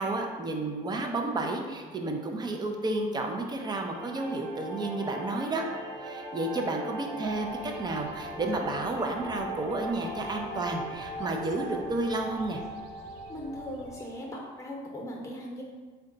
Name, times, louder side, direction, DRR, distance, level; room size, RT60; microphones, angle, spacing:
voice 1, 0.0-5.6 6.0-12.6, right 2 dB, 25° right, 3 dB, 0.4 m, -31 dB
sound 1, 3.4-14.4, right 1 dB, 50° right, 1.0 m, -40 dB
sound 2, 7.2-14.0, right 2 dB, 90° right, 0.4 m, -51 dB
voice 2, 13.3-15.6, left 1 dB, 20° left, -1 dB, 0.8 m, -39 dB
3.7 x 2.2 x 3.8 m, 1.4 s
cardioid pair, 110°, 17 cm